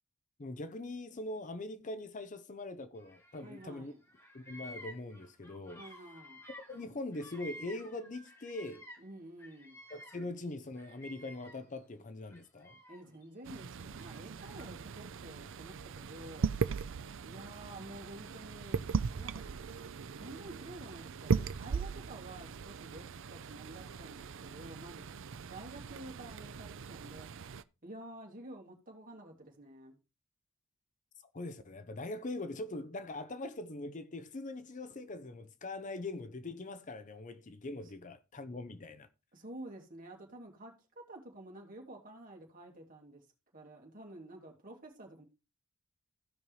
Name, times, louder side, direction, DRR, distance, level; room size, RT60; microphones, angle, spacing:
voice 1, 0.4-3.9 4.3-5.8 6.7-8.9 9.9-12.8 31.3-39.1, left 2 dB, 35° left, 0.6 m, -42 dB
Bird vocalization bird call bird song, 3.0-3.8 4.0-9.1 9.4-11.8 12.3-13.2 14.0-15.0, equal, 15° left, 2.0 m, -53 dB
voice 2, 3.3-4.0 5.7-6.4 9.0-9.8 12.9-16.5 17.2-18.8 19.2-19.5 20.1-25.1 25.5-27.3 27.8-30.0 39.3-43.2 43.5-45.2, right 1 dB, 40° right, 2.7 m, -50 dB
sound 1, 13.5-27.6, right 5 dB, 60° right, 0.5 m, -39 dB
16.0 x 5.4 x 3.2 m
head